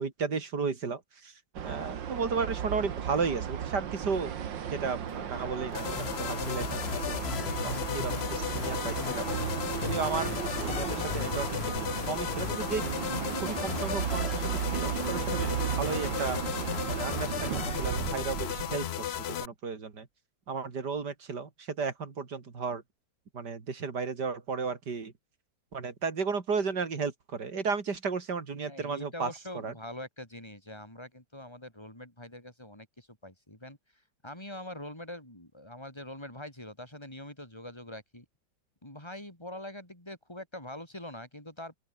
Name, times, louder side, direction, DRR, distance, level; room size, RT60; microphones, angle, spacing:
voice 1, 0.0-1.3 1.6-4.3 4.7-5.9 6.2-7.2 7.6-9.3 9.8-10.4 10.7-11.6 12.0-12.9 13.4-16.4 16.9-19.2 19.4-20.1 20.5-22.8 23.3-25.1 25.7-29.3 29.6-29.7, right 5 dB, 65° right, 3.1 m, -34 dB
sound 1, 1.5-18.9, right 9 dB, 85° right, 2.1 m, -35 dB
sound 2, 5.1-12.9, left 5 dB, 60° left, 3.1 m, -47 dB
sound 3, 5.7-19.5, left 10 dB, 85° left, 0.5 m, -35 dB
voice 2, 28.7-38.3 38.8-41.8, left 1 dB, 15° left, 5.4 m, -44 dB
open air
omnidirectional pair, 1.9 m